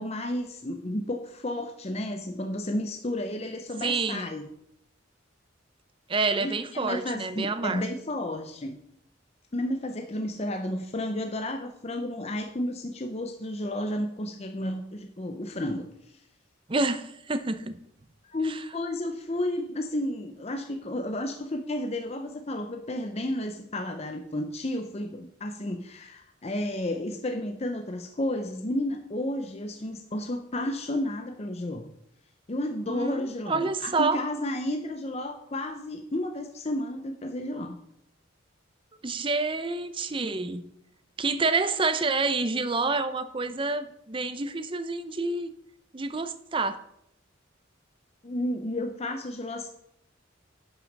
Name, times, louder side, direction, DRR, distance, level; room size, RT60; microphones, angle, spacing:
voice 1, 0.0-4.5 6.4-8.8 9.5-16.2 18.2-31.9 32.5-37.7 48.2-49.7, left 1 dB, 30° left, 5 dB, 0.6 m, -32 dB
voice 2, 3.8-4.3 6.1-7.8 16.7-17.8 18.4-18.6 32.9-34.2 39.0-40.7 41.2-45.5 45.9-46.8, right 3 dB, 25° right, 11 dB, 0.6 m, -28 dB
11.0 x 6.0 x 5.3 m, 0.76 s
head